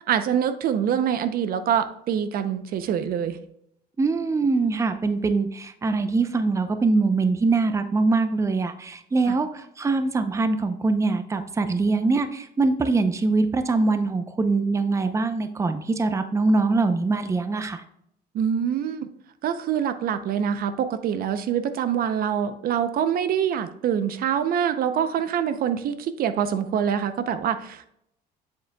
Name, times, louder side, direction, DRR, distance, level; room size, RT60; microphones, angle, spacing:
voice 1, 0.1-3.4 9.3-9.4 18.3-19.1 19.4-27.9, right 8 dB, 60° right, 11 dB, 0.6 m, -25 dB
voice 2, 4.0-17.8, right 3 dB, 20° right, 9 dB, 0.6 m, -23 dB
7.4 x 7.3 x 2.2 m, 0.73 s
cardioid pair, 110°, 17 cm